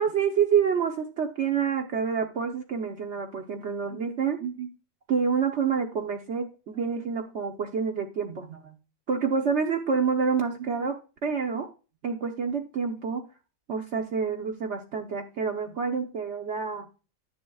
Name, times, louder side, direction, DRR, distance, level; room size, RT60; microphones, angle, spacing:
voice 1, 0.0-4.7 5.1-8.7 9.1-11.7 12.0-13.2 13.7-16.8, right 6 dB, 60° right, 2 dB, 1.2 m, -28 dB
10.5 x 10.5 x 2.4 m, 0.33 s
omnidirectional pair, 1.4 m